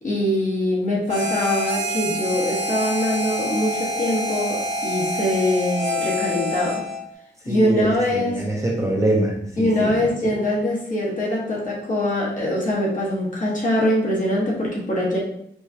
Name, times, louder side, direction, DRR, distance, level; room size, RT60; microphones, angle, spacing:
voice 1, 0.0-6.8 7.4-8.4 9.6-15.2, left 1 dB, 45° left, -5 dB, 1.1 m, -23 dB
Harmonica, 1.1-7.1, equal, 75° right, 0.9 m, -27 dB
voice 2, 7.5-10.0, right 1 dB, 15° right, -2 dB, 0.5 m, -24 dB
4.7 x 2.2 x 2.7 m, 0.71 s
wide cardioid pair, 155°, 19 cm